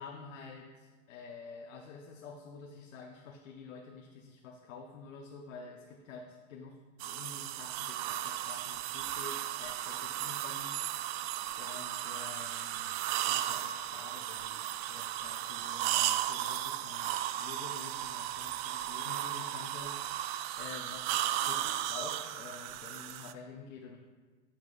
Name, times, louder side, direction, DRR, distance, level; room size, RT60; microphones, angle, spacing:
voice 1, 0.0-10.8 11.1-11.2 11.6-24.0, left 5 dB, 85° left, 1 dB, 0.9 m, -49 dB
sound 1, 7.0-23.3, right 12 dB, 55° right, 0.5 m, -35 dB
13.0 x 5.9 x 2.4 m, 1.3 s
supercardioid pair, 125°, 38 cm